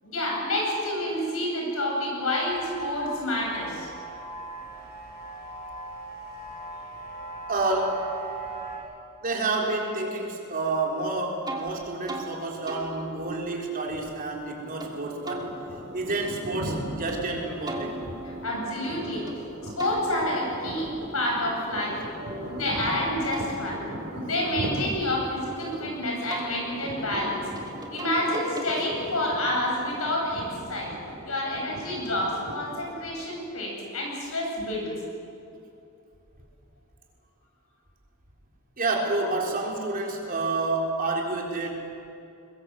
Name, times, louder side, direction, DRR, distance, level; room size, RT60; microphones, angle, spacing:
voice 1, 0.0-3.9 18.2-19.2 19.8-22.0 22.5-23.8 24.1-27.5 27.9-30.9 31.2-34.9, left 1 dB, 80° left, -1 dB, 7.9 m, -28 dB
sound 1, 2.5-8.8, right 3 dB, 45° left, 7.6 m, -39 dB
voice 2, 7.5-8.1 9.2-15.5 15.9-18.1 22.2-22.6 38.8-41.8, right 2 dB, 40° right, 0 dB, 4.0 m, -29 dB
sound 2, 11.5-11.7 12.1-12.3 12.7-14.9 15.2-17.2 17.7-19.4 19.8-22.7 23.1-25.8 26.3-29.3, right 1 dB, 20° right, 2.3 m, -41 dB
sound 3, 14.5-33.1, equal, 65° right, 6.5 m, -39 dB
22.5 x 21.5 x 7.7 m, 2.6 s
head